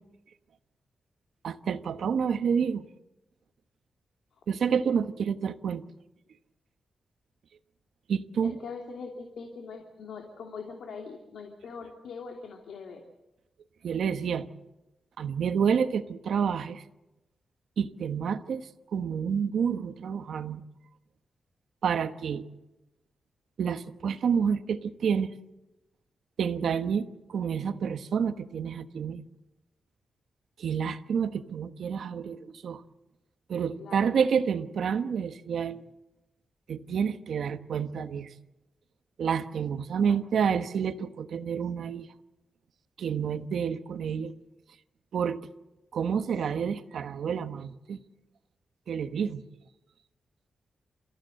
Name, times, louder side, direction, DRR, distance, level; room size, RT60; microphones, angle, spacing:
voice 1, 1.4-2.9 4.5-5.8 8.1-8.6 13.8-14.5 15.2-16.8 17.8-18.6 18.9-20.6 21.8-22.5 23.6-25.3 26.4-29.2 30.6-32.8 33.5-35.8 36.7-38.3 39.2-42.1 43.0-44.3 45.1-45.4 45.9-48.0 48.9-49.4, right 7 dB, 80° right, 10 dB, 1.2 m, -29 dB
voice 2, 8.4-13.0 33.8-34.3 40.1-40.6, left 5 dB, 85° left, 2 dB, 2.7 m, -42 dB
29.5 x 15.0 x 7.8 m, 0.99 s
wide cardioid pair, 120°, 0 cm